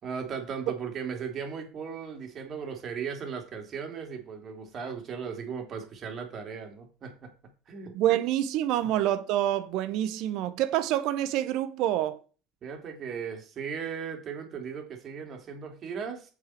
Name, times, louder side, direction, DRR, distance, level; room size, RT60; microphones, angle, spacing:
voice 1, 0.0-7.3 7.7-7.9 12.6-16.3, right 6 dB, 45° right, 3.3 m, -37 dB
voice 2, 7.9-12.2, right 12 dB, 60° right, 0.9 m, -27 dB
7.9 x 7.6 x 4.5 m
figure-of-eight pair, 65°, 0 cm